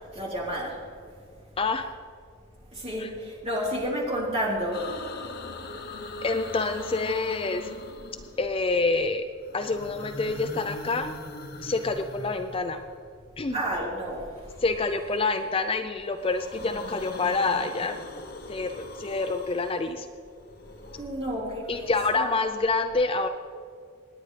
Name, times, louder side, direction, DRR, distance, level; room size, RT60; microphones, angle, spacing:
voice 1, 0.1-0.8 2.7-4.9 13.5-14.5 20.8-22.3, equal, 30° right, -4 dB, 3.6 m, -31 dB
voice 2, 1.6-1.9 3.0-3.1 6.2-7.7 8.4-9.3 9.5-11.1 11.6-12.8 13.4-13.6 14.6-18.0 18.5-20.1 21.7-23.3, left 3 dB, 25° left, 7 dB, 0.5 m, -27 dB
sound 1, 4.7-8.7 9.4-13.1 14.5-15.7 16.0-21.0, left 2 dB, 50° left, 1.0 m, -41 dB
27.0 x 9.9 x 3.3 m, 2.3 s
head